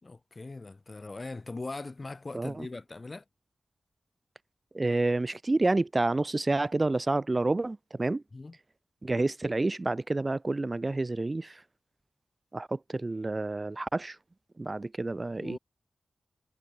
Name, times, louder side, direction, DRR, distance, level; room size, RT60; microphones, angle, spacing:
voice 1, 0.0-3.2 8.3-8.6 15.3-15.6, left 3 dB, 35° left, 3.5 m, -40 dB
voice 2, 2.3-2.7 4.7-8.2 9.0-11.6 12.5-14.2 14.6-15.6, right 2 dB, 30° right, 1.6 m, -29 dB
wide cardioid pair, 80°, 0 cm